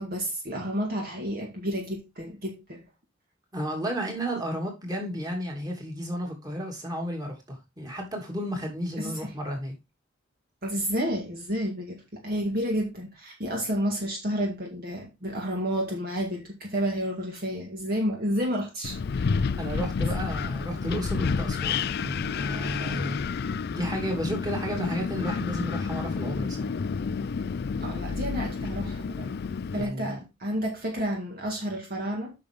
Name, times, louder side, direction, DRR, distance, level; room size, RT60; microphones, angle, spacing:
voice 1, 0.0-2.8 9.0-9.3 10.6-19.3 27.8-29.4 29.7-32.3, equal, 50° right, 2.0 m, -30 dB
voice 2, 3.5-9.7 19.4-26.7 29.7-30.3, equal, 20° right, 2.9 m, -33 dB
Wind, 18.8-29.8, left 5 dB, 55° left, 0.4 m, -30 dB
8.5 x 6.2 x 3.7 m
head